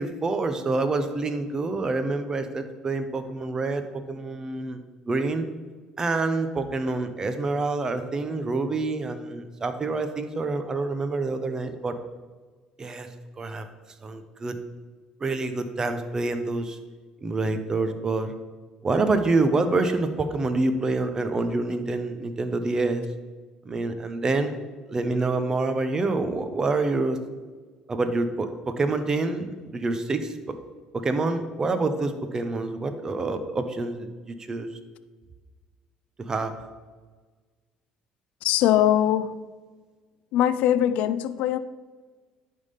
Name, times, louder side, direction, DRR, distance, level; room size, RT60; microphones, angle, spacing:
voice 1, 0.0-5.5 6.0-11.9 12.8-13.1 13.4-13.6 14.0-14.6 15.2-16.8 17.2-18.3 18.8-23.1 23.6-24.5 24.9-27.2 27.9-30.6 31.0-34.7 36.2-36.5, right 3 dB, 30° right, 0.8 m, -27 dB
voice 2, 38.4-39.4 40.3-41.6, left 11 dB, 80° left, 0.4 m, -21 dB
10.5 x 3.8 x 5.3 m
cardioid pair, 100°, 2 cm